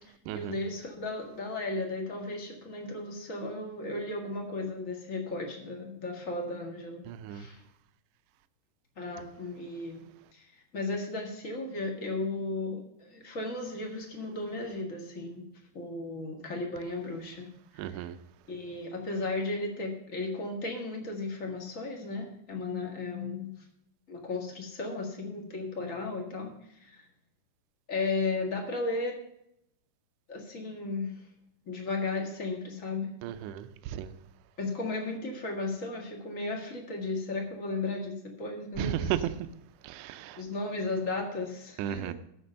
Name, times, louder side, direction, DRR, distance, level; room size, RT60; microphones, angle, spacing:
voice 1, 0.3-7.6 9.0-10.0 10.3-10.5 10.7-15.5 15.7-17.5 17.7-18.1 18.5-23.6 24.1-27.0 27.9-29.1 30.3-31.1 31.6-33.1 34.6-39.1 40.4-42.1, left 3 dB, 45° left, 1.0 m, -35 dB
voice 2, 7.1-7.4 17.8-18.1 33.2-34.1 38.8-39.4 39.8-40.4 41.8-42.1, right 11 dB, 85° right, 1.8 m, -34 dB
14.5 x 5.3 x 6.6 m
omnidirectional pair, 4.4 m